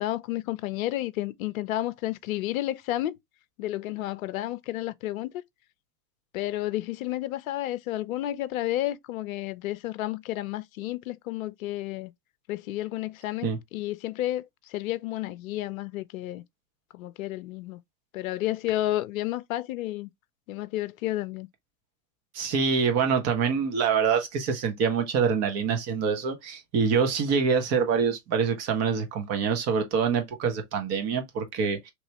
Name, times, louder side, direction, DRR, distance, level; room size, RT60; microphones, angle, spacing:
voice 1, 0.0-3.2 3.6-5.3 6.3-12.1 12.5-16.4 16.9-17.8 18.1-20.1 20.5-21.5, left 15 dB, 65° left, 0.6 m, -31 dB
voice 2, 22.3-31.9, right 6 dB, 35° right, 1.2 m, -25 dB
3.1 x 3.0 x 2.9 m
hypercardioid pair, 110°, 45 cm